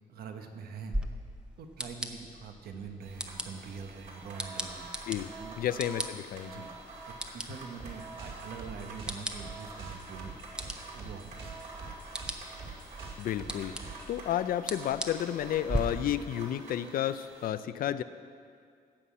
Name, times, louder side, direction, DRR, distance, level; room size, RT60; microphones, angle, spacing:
voice 1, 0.1-0.9 1.6-4.9 5.4-5.6 6.4-6.7 7.1-10.4 10.9-11.5, right 5 dB, 75° right, 5 dB, 1.2 m, -44 dB
sound 1, 0.9-15.8, right 1 dB, 5° right, 0.7 m, -41 dB
sound 2, 3.0-17.5, right 3 dB, 60° right, 2.4 m, -47 dB
voice 2, 5.6-6.6 13.2-13.7 14.1-18.0, left 11 dB, 65° left, 14 dB, 0.5 m, -31 dB
sound 3, 7.8-14.2, right 4 dB, 35° right, 2.3 m, -46 dB
15.0 x 5.8 x 8.5 m, 2.2 s
cardioid pair, 165°, 16 cm